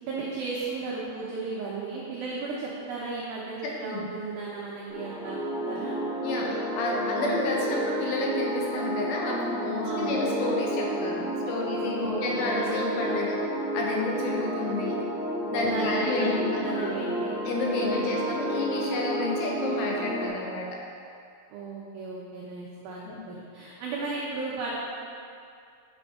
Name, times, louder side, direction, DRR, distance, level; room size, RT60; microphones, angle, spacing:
voice 1, 0.0-5.4 5.7-6.0 7.2-7.5 9.8-10.2 12.0-12.5 15.6-17.3 17.8-18.2 21.5-24.7, right 4 dB, 85° right, -5 dB, 2.0 m, -35 dB
voice 2, 3.6-4.1 6.2-13.4 13.7-15.0 15.5-17.0 17.5-20.7 23.1-23.2, left 3 dB, 75° left, -2 dB, 2.8 m, -30 dB
sound 1, 4.9-20.3, right 1 dB, 65° right, 1.5 m, -31 dB
8.2 x 6.0 x 3.6 m, 2.4 s
omnidirectional pair, 5.3 m